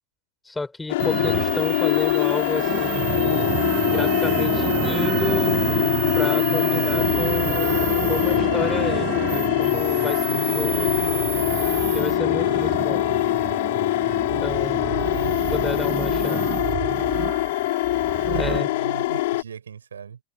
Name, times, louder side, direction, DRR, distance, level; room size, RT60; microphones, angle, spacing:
voice 1, 0.4-3.2 3.9-5.6 6.2-7.7 8.1-10.9 11.9-13.0 14.4-14.9 15.5-16.4 18.3-18.7, left 3 dB, 10° left, 5.7 m, -31 dB
sound 1, 0.9-19.4, left 18 dB, 50° left, 2.1 m, -23 dB
sound 2, 1.0-18.6, right 17 dB, 35° right, 5.0 m, -29 dB
voice 2, 14.9-15.7 18.2-20.2, right 7 dB, 70° right, 6.8 m, -37 dB
figure-of-eight pair, 90°, 0 cm